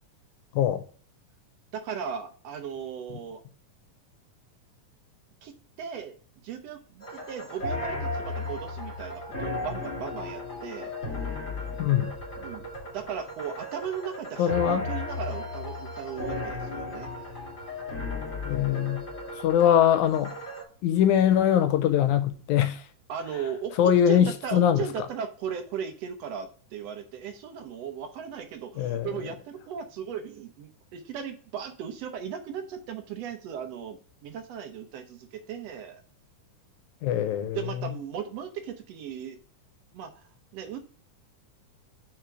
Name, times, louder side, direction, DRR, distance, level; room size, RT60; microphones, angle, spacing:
voice 1, 1.7-3.4 5.4-6.2 6.4-11.4 12.4-12.7 12.9-17.4 23.1-36.0 37.4-39.4 39.9-40.8, right 7 dB, 70° right, 1.6 m, -37 dB
sound 1, 7.0-20.6, left 2 dB, 30° left, 2.0 m, -35 dB
voice 2, 11.8-12.1 14.4-14.9 18.5-19.1 19.4-20.3 20.8-22.8 23.8-24.8 28.8-29.1 37.0-37.6, left 10 dB, 80° left, 1.9 m, -22 dB
5.0 x 4.5 x 6.0 m
omnidirectional pair, 3.6 m